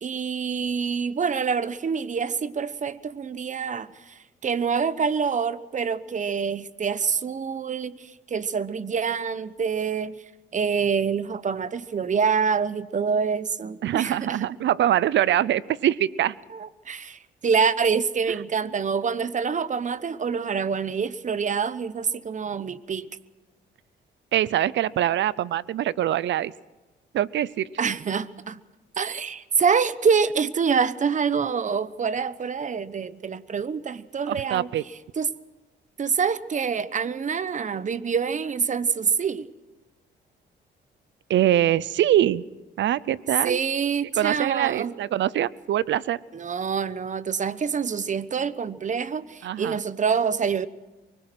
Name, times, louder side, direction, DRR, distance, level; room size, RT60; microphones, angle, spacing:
voice 1, 0.0-10.2 10.5-14.4 16.5-23.1 27.8-28.6 29.0-34.7 35.2-35.3 36.0-39.5 43.4-44.9 46.3-50.7, right 6 dB, 40° right, 1.0 m, -26 dB
voice 2, 13.8-16.4 18.3-18.4 24.3-26.5 27.1-27.7 34.3-34.8 41.3-42.4 42.8-43.6 44.2-46.2 49.4-49.8, right 12 dB, 70° right, 0.7 m, -23 dB
24.0 x 21.0 x 6.2 m
cardioid pair, 90°, 20 cm